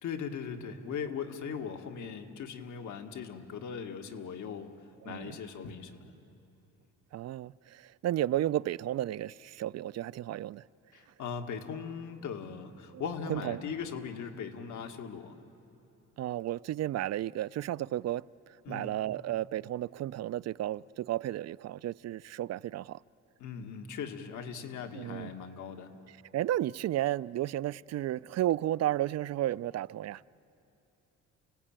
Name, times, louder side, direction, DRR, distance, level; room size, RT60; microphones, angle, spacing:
voice 1, 0.0-4.7 5.0-6.1 10.9-15.4 18.7-18.9 23.4-25.9, left 6 dB, 75° left, 2.0 m, -39 dB
voice 2, 5.0-5.4 7.1-10.6 12.9-13.0 13.3-13.6 16.2-18.2 18.7-23.0 24.9-25.3 26.3-30.3, right 13 dB, 60° right, 0.5 m, -33 dB
29.5 x 17.5 x 8.9 m
cardioid pair, 90°, 30 cm